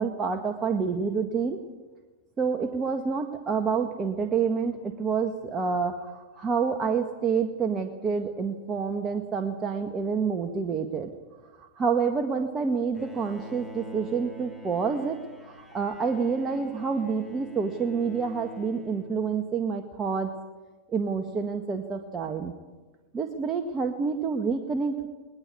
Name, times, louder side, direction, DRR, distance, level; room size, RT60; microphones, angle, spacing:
voice 1, 0.0-1.6 2.4-11.1 11.6-20.3 20.9-22.5 23.1-25.1, right 5 dB, 25° right, 4 dB, 1.8 m, -28 dB
Bowed string instrument, 12.9-19.7, left 2 dB, ahead, 3.0 m, -46 dB
20.5 x 20.0 x 8.6 m, 1.3 s
hypercardioid pair, 105°, 0 cm